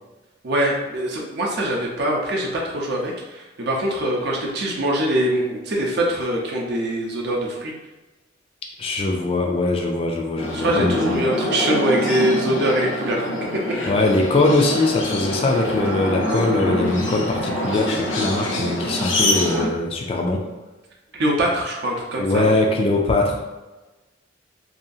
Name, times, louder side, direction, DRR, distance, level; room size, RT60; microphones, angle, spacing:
voice 1, 0.4-7.7 10.5-13.8 21.2-22.5, right 1 dB, 60° right, -2 dB, 0.6 m, -23 dB
voice 2, 8.8-11.2 13.9-20.5 22.2-23.5, left 2 dB, 30° left, 1 dB, 0.3 m, -21 dB
sound 1, 10.4-19.7, left 1 dB, 85° left, 0.5 m, -25 dB
2.7 x 2.3 x 2.6 m, 1.1 s
head